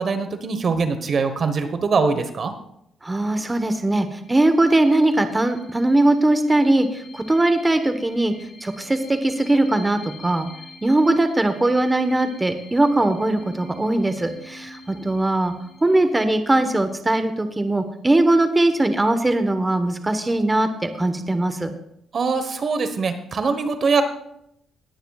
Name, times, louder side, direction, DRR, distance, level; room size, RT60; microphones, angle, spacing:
voice 1, 0.0-2.5 22.1-24.0, right 4 dB, 45° right, 9 dB, 1.2 m, -22 dB
voice 2, 3.0-8.3 8.6-10.5 10.8-15.5 15.8-21.7, right 2 dB, 15° right, 8 dB, 1.1 m, -20 dB
sound 1, 4.1-17.4, left 2 dB, 45° left, 4.1 m, -44 dB
19.0 x 10.0 x 2.4 m, 0.76 s
cardioid pair, 90°, 0 cm